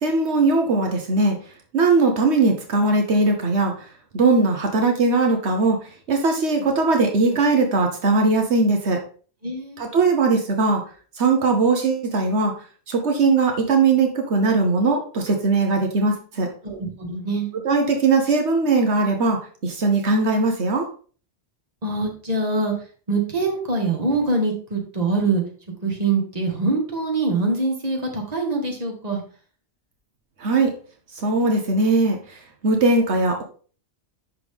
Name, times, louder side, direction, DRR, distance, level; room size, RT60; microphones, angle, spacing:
voice 1, 0.0-1.4 1.7-3.9 4.1-9.0 9.8-10.8 11.2-12.5 12.9-16.5 17.6-20.9 30.4-30.7 31.1-33.4, right 3 dB, 80° right, 3 dB, 1.3 m, -20 dB
voice 2, 9.4-9.8 16.6-17.5 21.8-22.7 23.1-25.4 25.8-29.2, right 3 dB, 35° right, 2 dB, 1.6 m, -24 dB
11.0 x 3.8 x 3.5 m, 0.41 s
omnidirectional pair, 1.1 m